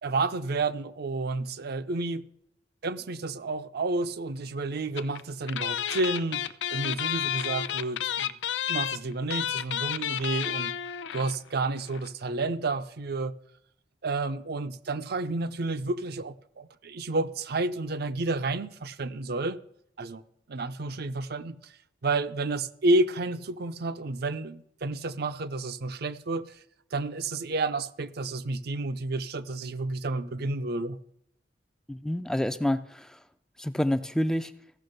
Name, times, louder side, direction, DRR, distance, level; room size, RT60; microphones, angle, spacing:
voice 1, 0.0-2.2 2.8-6.4 6.7-8.3 8.7-10.7 11.1-13.3 14.0-19.6 20.0-20.2 20.5-21.7 22.0-26.6 26.9-31.0, right 2 dB, 60° right, 0.6 m, -30 dB
sound 1, 5.0-5.2 5.5-11.4 11.6-11.7 11.9-12.1, left 10 dB, 80° left, 0.5 m, -31 dB
voice 2, 31.9-33.2 33.6-34.5, left 1 dB, 5° left, 0.3 m, -28 dB
15.0 x 6.2 x 6.5 m
head